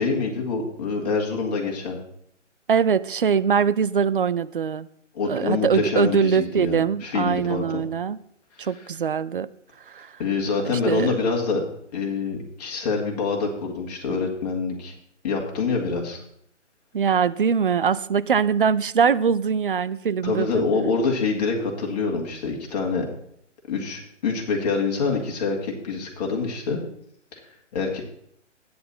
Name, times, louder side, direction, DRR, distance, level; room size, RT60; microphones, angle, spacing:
voice 1, 0.0-2.0 5.1-7.8 8.6-8.7 10.2-11.6 11.9-14.9 15.2-16.2 20.2-23.1 23.7-26.8 27.3-27.4 27.7-28.0, left 4 dB, 35° left, 0 dB, 2.2 m, -26 dB
voice 2, 2.7-4.9 5.3-8.2 8.6-9.5 9.9-10.1 10.7-11.2 16.9-20.6, right 6 dB, 45° right, 17 dB, 0.4 m, -22 dB
11.5 x 9.4 x 4.2 m, 0.69 s
figure-of-eight pair, 140°, 37 cm